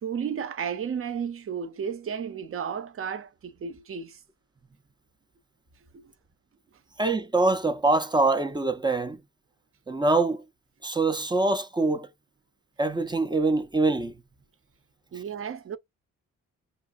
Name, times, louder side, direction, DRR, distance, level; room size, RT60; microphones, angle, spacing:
voice 1, 0.0-4.2 5.9-6.0 15.1-15.8, right 7 dB, 45° right, 0.8 m, -33 dB
voice 2, 7.0-9.2 9.9-10.4 10.8-12.1 12.8-14.1, right 2 dB, 15° right, 0.6 m, -24 dB
5.9 x 2.6 x 2.6 m
cardioid pair, 90°, 30 cm